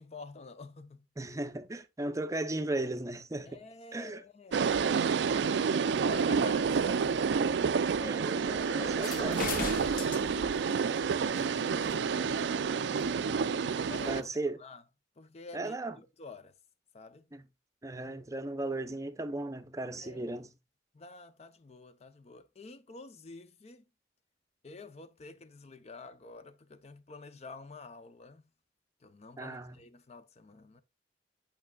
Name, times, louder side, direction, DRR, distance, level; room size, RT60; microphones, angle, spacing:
voice 1, 0.0-1.0 3.5-7.3 8.6-10.8 11.6-12.5 13.9-14.8 15.2-16.5 16.9-17.3 20.0-20.4 20.9-23.8 24.6-28.4 29.0-30.8, left 3 dB, 35° left, 0.5 m, -49 dB
voice 2, 1.2-3.6 3.9-4.2 8.0-8.6 9.0-9.4 14.0-14.6 15.5-16.0 17.3-17.4 17.8-20.5 29.4-29.8, right 2 dB, 20° right, 0.6 m, -36 dB
sound 1, 4.5-14.2, right 6 dB, 75° right, 0.4 m, -29 dB
sound 2, 8.9-14.2, left 3 dB, 55° left, 1.1 m, -41 dB
8.7 x 5.9 x 2.2 m
head